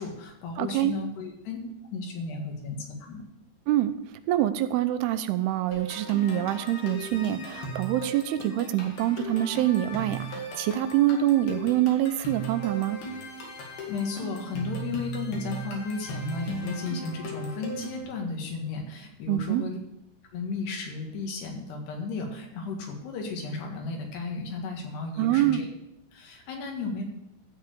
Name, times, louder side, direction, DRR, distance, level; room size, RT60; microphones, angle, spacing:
voice 1, 0.0-1.6 1.9-3.2 13.9-19.8 20.3-25.7 26.1-27.0, left 4 dB, 90° left, 2 dB, 3.9 m, -34 dB
voice 2, 0.6-1.0 3.7-3.9 4.3-13.0 19.3-19.6 25.2-25.6, right 13 dB, 85° right, 11 dB, 2.6 m, -25 dB
sound 1, 5.7-18.0, right 2 dB, 70° left, 4.0 m, -37 dB
13.0 x 4.5 x 8.3 m, 0.85 s
omnidirectional pair, 4.6 m